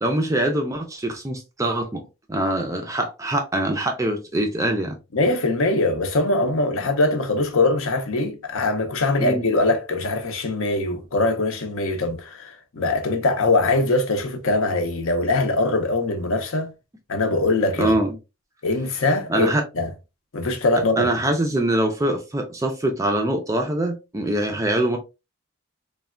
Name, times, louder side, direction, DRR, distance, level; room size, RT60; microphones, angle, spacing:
voice 1, 0.0-5.0 9.2-9.5 17.8-18.2 19.3-19.6 21.0-25.0, right 1 dB, 15° right, 0.3 m, -23 dB
voice 2, 5.1-16.7 17.1-17.9 18.6-19.9 20.3-21.1, left 2 dB, 65° left, 0.6 m, -22 dB
3.2 x 2.1 x 2.4 m
head